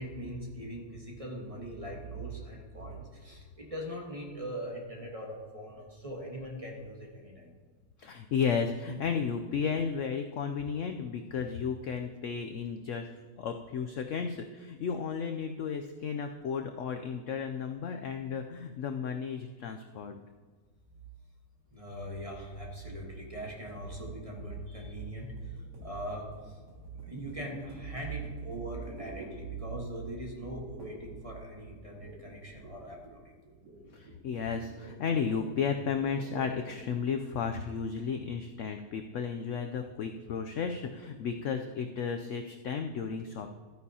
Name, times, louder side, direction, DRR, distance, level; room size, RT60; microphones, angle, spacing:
voice 1, 0.0-7.5 21.7-25.5 25.8-26.3 27.0-33.2, right 1 dB, 25° right, -1 dB, 1.2 m, -40 dB
voice 2, 8.0-13.1 13.4-20.2 33.9-43.5, left 6 dB, 75° left, 6 dB, 0.7 m, -33 dB
sound 1, 23.7-30.0 30.8-31.2 31.4-37.1, right 2 dB, 80° right, 2.4 m, -51 dB
13.0 x 9.4 x 2.8 m, 1.5 s
omnidirectional pair, 1.8 m